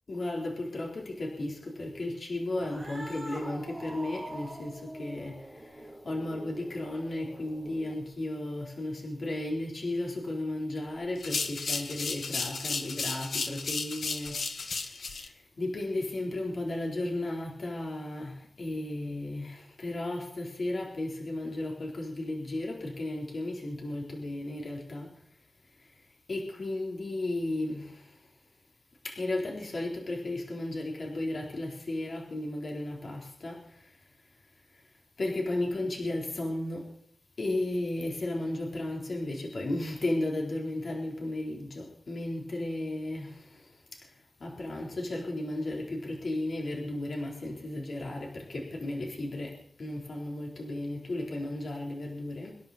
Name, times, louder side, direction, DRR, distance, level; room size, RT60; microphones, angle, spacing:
voice 1, 0.1-25.1 25.8-25.9 26.3-28.2 29.0-34.0 35.2-36.9 37.4-44.1 44.4-52.6, left 1 dB, 60° left, -1 dB, 4.0 m, -34 dB
Cat, 2.5-8.2, right 1 dB, ahead, 6.0 m, -44 dB
sound 1, 11.2-15.3, left 4 dB, 85° left, 1.5 m, -33 dB
25.0 x 10.5 x 4.3 m, 0.72 s
wide cardioid pair, 110°, 0 cm